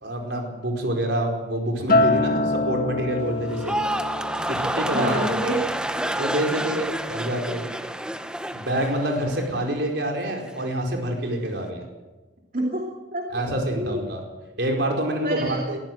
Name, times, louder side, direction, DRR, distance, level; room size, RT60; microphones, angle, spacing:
voice 1, 0.0-3.7 4.5-5.4 6.2-7.7 8.5-11.8 13.3-14.2 14.6-15.8, right 1 dB, 60° right, 2 dB, 4.7 m, -27 dB
Acoustic guitar, 1.9-6.3 6.7-7.1, left 2 dB, 45° left, 1.9 m, -26 dB
sound 1, 3.5-9.8 10.1-10.6, right 1 dB, 5° right, 0.7 m, -29 dB
voice 2, 4.9-6.0 12.5-13.4 13.8-14.0 15.2-15.6, right 1 dB, 45° right, -1 dB, 2.8 m, -28 dB
22.0 x 15.0 x 7.8 m, 1.2 s
head